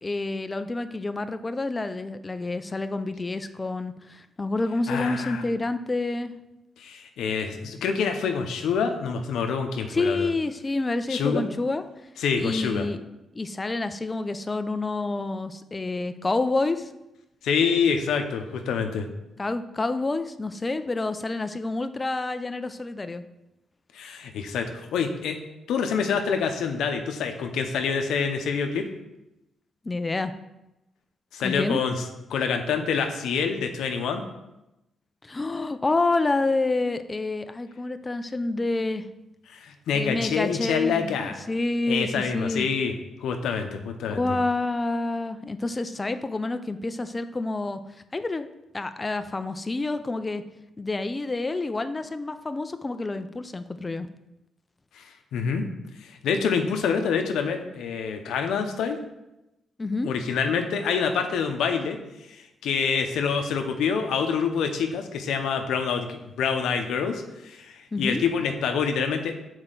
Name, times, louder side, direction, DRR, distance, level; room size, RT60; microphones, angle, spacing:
voice 1, 0.0-6.3 9.9-11.8 12.4-13.0 13.3-16.9 19.4-23.2 29.8-30.3 31.4-31.8 35.2-39.1 39.9-41.2 41.5-42.7 44.1-47.8 48.1-50.4 50.8-54.1 59.8-60.1 67.9-68.2, left 2 dB, 20° left, 10 dB, 0.4 m, -28 dB
voice 2, 4.9-5.4 6.8-10.3 11.1-11.4 12.2-12.9 17.4-19.1 23.9-25.4 25.7-28.8 31.3-34.2 39.5-41.4 41.9-42.9 43.2-44.4 54.9-55.6 56.0-59.0 60.0-62.0 62.4-69.3, left 6 dB, 90° left, 5 dB, 0.6 m, -26 dB
6.3 x 4.4 x 3.8 m, 0.94 s
cardioid pair, 110°, 0 cm